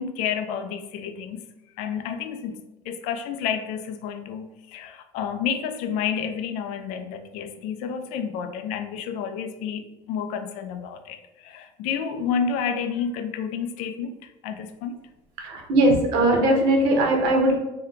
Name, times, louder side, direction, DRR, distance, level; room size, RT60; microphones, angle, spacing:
voice 1, 0.0-1.4 1.8-2.6 2.8-14.1 14.4-14.9, left 7 dB, 70° left, 8 dB, 0.4 m, -30 dB
voice 2, 15.4-17.5, right 1 dB, 85° right, 1 dB, 0.9 m, -20 dB
2.7 x 2.2 x 3.6 m, 0.96 s
cardioid pair, 155°, 13 cm